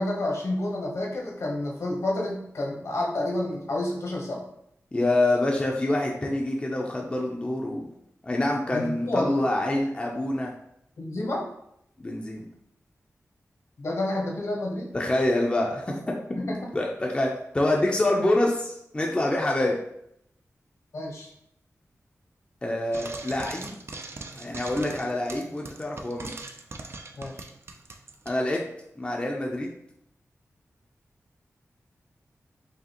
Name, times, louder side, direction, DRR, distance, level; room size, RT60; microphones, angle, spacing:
voice 1, 0.0-4.4 8.7-9.3 11.0-11.5 13.8-14.9 16.4-16.7 20.9-21.3 27.2-27.5, left 1 dB, 70° left, -1 dB, 1.1 m, -29 dB
voice 2, 4.9-7.9 8.2-10.5 12.0-12.5 14.9-16.2 16.4-19.8 22.6-23.8 24.4-26.3 28.3-28.6 29.0-29.7, left 1 dB, 20° left, -1 dB, 0.5 m, -26 dB
Frying (food), 22.9-28.4, right 3 dB, 55° right, 0.4 m, -40 dB
4.8 x 2.8 x 2.9 m, 0.76 s
wide cardioid pair, 115°, 5 cm